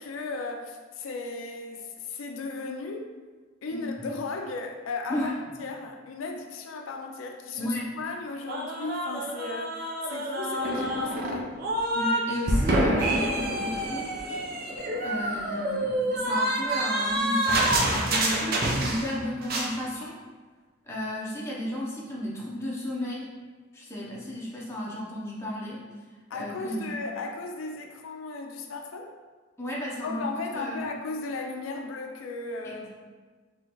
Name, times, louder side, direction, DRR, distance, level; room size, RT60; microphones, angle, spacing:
voice 1, 0.0-3.1 3.6-5.3 5.6-11.5 26.3-29.1 30.0-32.9, left 3 dB, 85° left, 3 dB, 0.4 m, -36 dB
voice 2, 7.6-7.9 11.9-14.3 15.0-20.2 20.8-23.3 23.7-25.8 26.3-26.9 29.6-30.8 32.6-32.9, equal, 15° left, -5 dB, 0.6 m, -33 dB
sound 1, 8.5-12.2 12.5-19.2 19.4-19.7, right 1 dB, 50° right, 0.5 m, -27 dB
3.7 x 3.0 x 2.9 m, 1.4 s
head